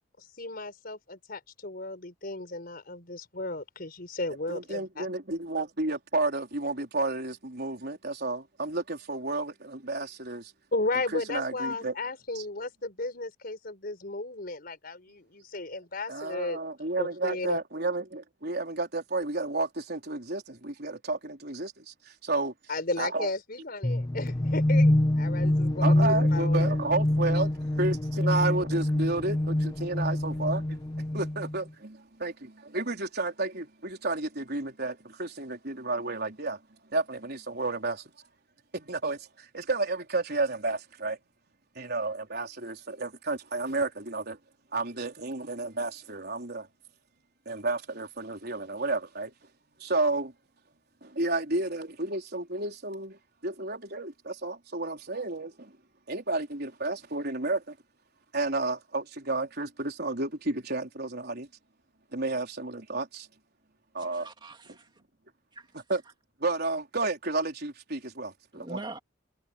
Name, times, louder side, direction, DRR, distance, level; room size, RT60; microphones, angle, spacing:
voice 1, 0.4-5.1 10.7-16.6 17.0-17.6 22.7-24.9 25.2-26.7, left 2 dB, 50° left, 4.9 m, -34 dB
voice 2, 4.5-10.5 11.1-11.9 12.3-12.4 16.1-21.9 22.2-22.5 23.0-23.3 25.8-30.8 31.1-36.6 36.9-38.0 38.7-41.2 41.8-44.4 44.7-46.7 47.5-49.3 49.8-50.3 51.0-55.7 56.1-57.7 58.3-61.5 62.1-63.3 63.9-64.3 65.9-66.0 66.4-68.8, right 2 dB, 55° right, 4.3 m, -31 dB
sound 1, 23.8-31.6, left 1 dB, 20° left, 0.6 m, -25 dB
voice 3, 64.0-64.9 65.5-65.7 68.5-69.0, right 2 dB, 25° right, 2.5 m, -42 dB
head